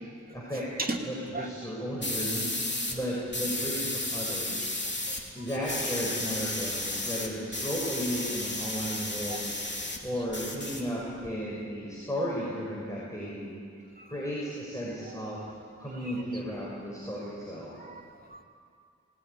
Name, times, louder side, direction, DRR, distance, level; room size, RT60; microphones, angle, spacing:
voice 1, 0.3-0.7 1.0-2.5 2.9-4.7 5.3-9.5 10.0-13.5 14.1-15.4 15.8-17.7, equal, 10° left, -6 dB, 6.2 m, -34 dB
voice 2, 1.3-1.7 2.4-2.5 4.6-4.7 5.1-5.4 9.3-9.4 14.0-14.1 15.1-15.5 15.9-16.4 17.7-18.4, right 2 dB, 30° right, 1 dB, 2.8 m, -39 dB
sound 1, 2.0-3.0 3.3-5.2 5.5-10.0 10.3-11.3, left 2 dB, 35° left, 3.0 m, -33 dB
19.5 x 19.5 x 9.8 m, 2.3 s
wide cardioid pair, 65°, 30 cm